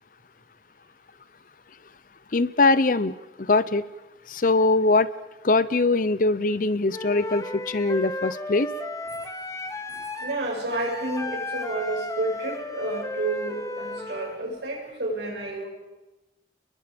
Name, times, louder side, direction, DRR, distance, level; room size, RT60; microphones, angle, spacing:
voice 1, 2.3-3.1 3.4-3.8 4.3-5.1 5.4-8.7, left 3 dB, 50° left, 17 dB, 0.7 m, -22 dB
Wind instrument woodwind instrument, 6.9-14.4, left 2 dB, 20° left, 1.5 m, -34 dB
voice 2, 9.9-15.7, right 2 dB, 75° right, -2 dB, 7.7 m, -30 dB
30.0 x 21.5 x 5.2 m, 1.0 s
head